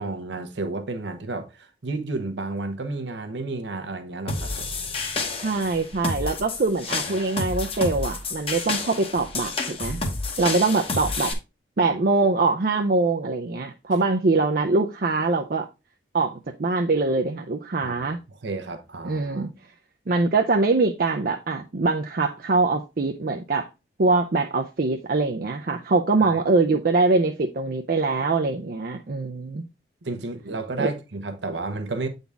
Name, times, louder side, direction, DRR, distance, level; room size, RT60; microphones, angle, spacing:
voice 1, 0.0-4.7 7.1-7.2 17.8-19.5 26.2-26.4 30.0-32.1, right 3 dB, 80° right, 1.0 m, -32 dB
sound 1, 4.3-11.3, left 3 dB, 30° left, 1.0 m, -30 dB
voice 2, 5.4-10.0 10.4-11.4 11.8-15.7 16.1-18.2 19.0-19.5 20.1-23.7 24.0-29.6 30.8-30.9, right 3 dB, 55° right, 0.5 m, -23 dB
8.2 x 4.0 x 3.4 m
head